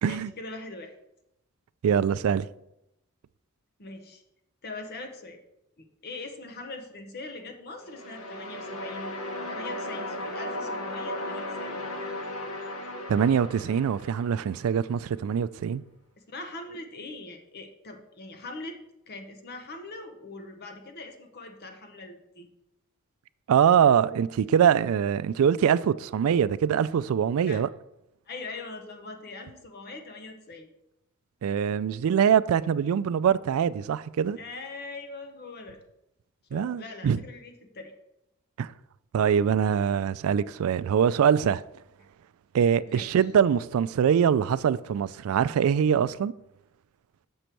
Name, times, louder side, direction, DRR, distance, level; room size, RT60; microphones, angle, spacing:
voice 1, 0.1-0.9 3.8-4.2 4.6-5.4 5.8-9.1 9.5-11.8 16.3-18.8 19.1-22.5 27.5-27.6 28.3-30.7 34.4-35.8 36.5-37.9 42.8-43.2, left 3 dB, 45° left, 0.8 m, -42 dB
voice 2, 1.8-2.5 13.1-15.8 23.5-27.7 31.4-34.4 36.5-37.2 38.6-38.7 39.1-41.6 42.5-46.3, right 8 dB, 70° right, 0.3 m, -23 dB
sound 1, 7.8-14.8, left 1 dB, 75° left, 1.0 m, -36 dB
6.6 x 6.1 x 4.5 m
head